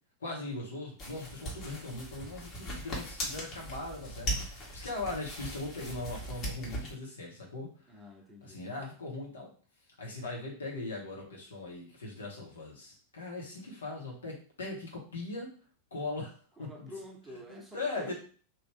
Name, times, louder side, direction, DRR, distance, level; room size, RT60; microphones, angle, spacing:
voice 1, 0.2-7.7 8.4-9.5 10.0-15.5 15.9-16.9 17.5-18.1, left 2 dB, 70° left, -2 dB, 1.3 m, -40 dB
sound 1, 1.0-6.9, equal, 30° left, 1.3 m, -39 dB
voice 2, 7.9-8.6 16.6-18.1, equal, 10° right, 0 dB, 0.8 m, -48 dB
3.1 x 2.6 x 3.4 m, 0.41 s
figure-of-eight pair, 90°, 0 cm